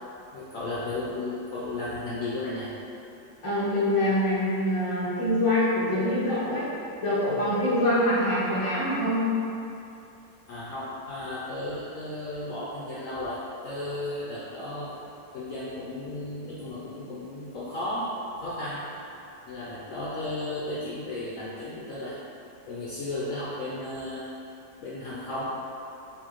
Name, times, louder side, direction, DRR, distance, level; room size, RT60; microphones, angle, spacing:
voice 1, 0.3-2.7 10.5-14.9 15.3-18.9 19.5-22.2 22.7-24.3 24.8-25.4, left 2 dB, 65° left, -8 dB, 0.9 m, -34 dB
voice 2, 3.4-6.7 7.0-9.3, left 1 dB, 30° left, -9 dB, 0.6 m, -25 dB
4.5 x 3.4 x 3.0 m, 2.8 s
omnidirectional pair, 1.9 m